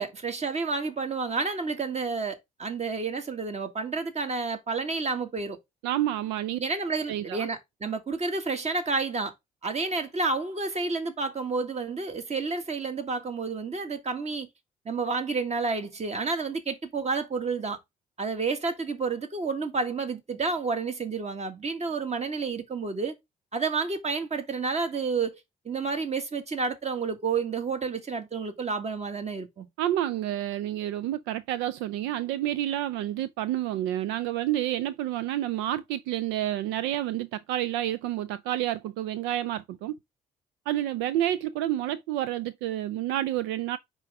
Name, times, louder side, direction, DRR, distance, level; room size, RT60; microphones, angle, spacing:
voice 1, 0.0-5.6 6.6-9.3 9.6-14.5 14.9-17.8 18.2-23.1 23.5-25.4 25.7-29.7, right 4 dB, 35° right, 1.8 m, -30 dB
voice 2, 5.8-6.6 7.1-7.5 29.8-39.9 40.7-43.8, right 13 dB, 75° right, 0.4 m, -29 dB
9.6 x 3.8 x 3.5 m
hypercardioid pair, 50°, 19 cm